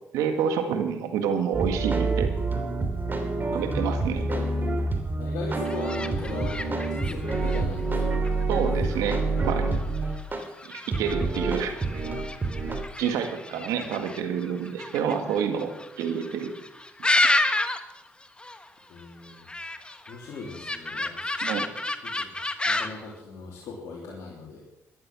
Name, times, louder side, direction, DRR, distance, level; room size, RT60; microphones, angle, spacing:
voice 1, 0.1-2.3 3.5-4.3 8.5-9.7 10.7-12.0 13.0-15.7 16.0-16.5 17.2-17.3 21.4-21.7, right 7 dB, 85° right, 6 dB, 1.8 m, -28 dB
sound 1, 1.5-10.4 10.9-12.7, right 3 dB, 35° right, 3.1 m, -27 dB
voice 2, 5.2-8.8 13.5-14.0 18.9-19.5 20.1-21.3 22.0-22.3 22.6-24.6, left 4 dB, 70° left, -4 dB, 3.1 m, -39 dB
sound 2, 5.5-18.0 18.2-18.7 19.0-23.0, left 2 dB, 15° left, 1.3 m, -31 dB
13.5 x 11.5 x 6.2 m, 0.90 s
supercardioid pair, 60°, 6 cm